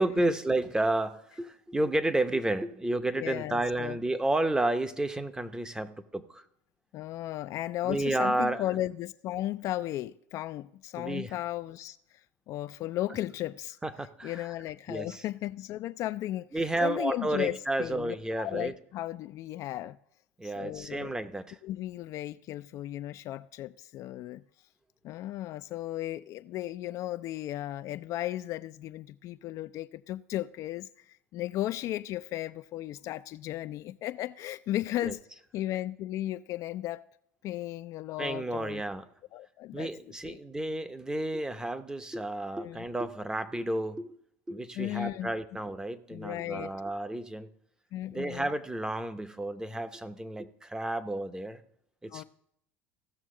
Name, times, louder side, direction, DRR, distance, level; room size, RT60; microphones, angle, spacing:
voice 1, 0.0-6.4 7.8-8.6 11.0-11.3 13.8-14.5 14.9-15.2 16.5-18.7 20.4-21.6 35.0-35.1 38.2-39.0 39.7-44.2 44.5-47.5 48.1-51.6 52.0-52.2, right 2 dB, 10° right, 0.7 m, -31 dB
voice 2, 3.2-4.0 6.9-12.2 12.5-13.8 14.2-20.0 20.4-21.1 21.6-24.4 25.0-35.2 35.5-37.0 37.4-38.8 39.3-39.9 40.2-40.4 42.6-42.8 44.8-45.3 46.1-46.7 47.9-48.5 52.1-52.2, left 14 dB, 50° left, 0.3 m, -35 dB
16.0 x 6.2 x 3.7 m
hypercardioid pair, 90°, 7 cm